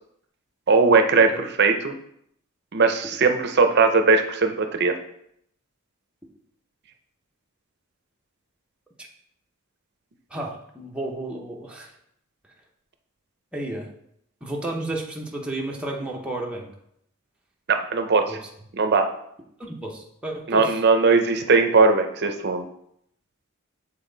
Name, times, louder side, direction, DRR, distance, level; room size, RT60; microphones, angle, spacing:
voice 1, 0.7-1.9 2.7-5.0 17.7-18.4 18.7-19.1 20.5-22.6, right 4 dB, 50° right, 7 dB, 0.6 m, -19 dB
voice 2, 10.3-11.9 13.5-13.9 14.4-16.7 18.3-18.4 19.6-20.8, right 1 dB, 5° right, -1 dB, 0.8 m, -32 dB
7.3 x 4.0 x 3.9 m, 0.73 s
head